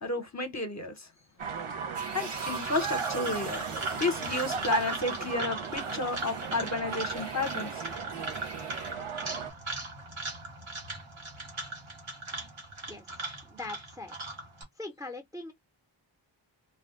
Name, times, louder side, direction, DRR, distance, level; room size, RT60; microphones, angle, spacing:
voice 1, 0.0-1.1 2.1-3.6 4.0-7.8, left 2 dB, 35° left, 0.7 m, -32 dB
sound 1, 1.4-9.5, right 6 dB, 90° right, 0.7 m, -36 dB
sound 2, 1.9-5.4 5.7-8.9, right 3 dB, 55° right, 1.0 m, -47 dB
sound 3, 2.3-14.6, right 2 dB, 75° right, 1.2 m, -39 dB
voice 2, 13.4-14.3 14.8-15.5, left 2 dB, 10° right, 0.6 m, -41 dB
2.3 x 2.1 x 3.6 m
wide cardioid pair, 70°, 48 cm